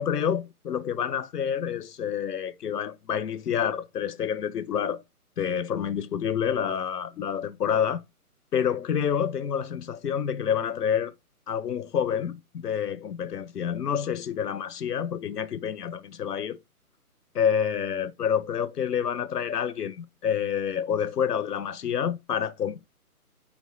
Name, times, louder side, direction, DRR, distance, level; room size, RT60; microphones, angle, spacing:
voice 1, 0.0-5.0 5.4-8.0 8.5-11.1 11.5-16.6 17.3-22.9, left 8 dB, 85° left, 0.7 m, -28 dB
4.5 x 2.8 x 3.0 m
figure-of-eight pair, 150°, 46 cm